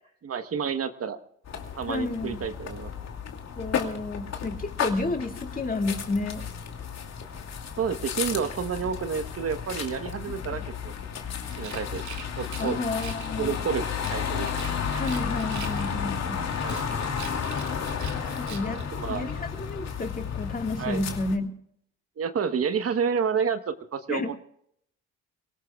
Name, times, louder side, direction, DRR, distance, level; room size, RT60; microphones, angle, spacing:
voice 1, 0.2-1.2 1.8-2.9 7.8-10.9 11.6-12.8 13.4-14.7 16.6-16.8 18.7-19.3 20.8-21.0 22.2-24.3, right 6 dB, 50° right, 9 dB, 1.2 m, -30 dB
sound 1, 1.5-21.4, left 7 dB, 60° left, 2.6 m, -33 dB
voice 2, 1.9-2.4 3.6-6.4 10.3-10.4 12.6-13.6 14.9-16.4 18.3-21.5 24.1-24.4, left 3 dB, 30° left, 4 dB, 2.3 m, -31 dB
Rattle, 11.4-13.4 13.8-16.1 16.5-18.9, right 8 dB, 70° right, 2.4 m, -44 dB
24.0 x 18.0 x 2.4 m, 0.69 s
cardioid pair, 90°, 30 cm